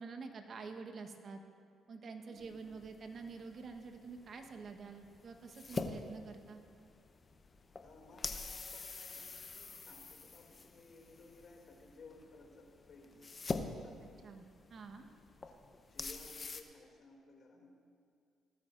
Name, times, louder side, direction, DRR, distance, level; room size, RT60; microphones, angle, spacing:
voice 1, 0.0-1.4 1.9-6.6 14.2-15.1, right 4 dB, 50° right, 5 dB, 1.2 m, -48 dB
sound 1, 2.4-16.6, left 4 dB, 35° left, 0.8 m, -46 dB
voice 2, 7.8-14.2 15.4-15.5 15.9-17.7, left 3 dB, 55° left, 0 dB, 2.6 m, -58 dB
19.5 x 12.5 x 2.6 m, 2.3 s
cardioid pair, 90°, 0 cm